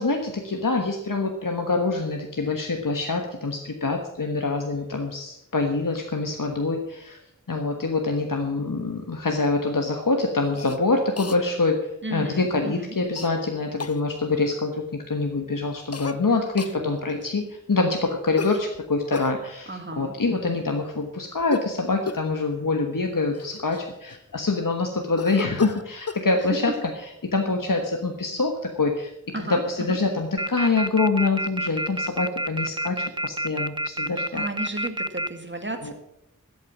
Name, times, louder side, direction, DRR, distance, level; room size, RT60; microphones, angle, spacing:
voice 1, 0.0-7.2 7.5-11.8 12.1-19.7 20.0-26.7 27.2-29.1 29.7-34.4 35.9-36.0, left 3 dB, 80° left, 3 dB, 1.3 m, -25 dB
Cough, 10.5-10.8 11.2-11.4 13.2-13.3 13.8-14.0 15.9-16.2 16.6-16.8 18.4-19.3 21.4-21.7 22.1-22.3 23.0-23.1 23.3-24.4 25.2-26.3, left 4 dB, 50° left, 0.7 m, -33 dB
voice 2, 12.0-13.0 16.6-17.0 19.7-20.6 26.4-26.5 29.3-30.0 34.1-35.9, right 1 dB, 35° right, 6 dB, 2.0 m, -34 dB
sound 1, 30.4-35.3, right 1 dB, 15° right, 0.5 m, -27 dB
13.0 x 8.4 x 7.2 m, 0.83 s
wide cardioid pair, 50°, 33 cm